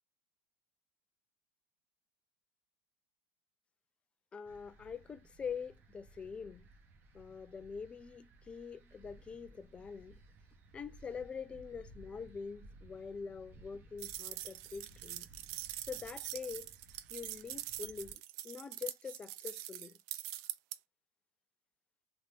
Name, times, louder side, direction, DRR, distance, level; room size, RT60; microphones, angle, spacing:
voice 1, 4.3-6.7 7.1-10.2 10.7-15.3 15.8-16.7 17.1-20.0, left 6 dB, 15° left, 0.3 m, -45 dB
sound 1, 4.4-18.1, right 2 dB, 30° right, 0.7 m, -59 dB
sound 2, 14.0-20.8, right 14 dB, 55° right, 0.4 m, -44 dB
2.8 x 2.4 x 3.3 m
supercardioid pair, 145°, 7 cm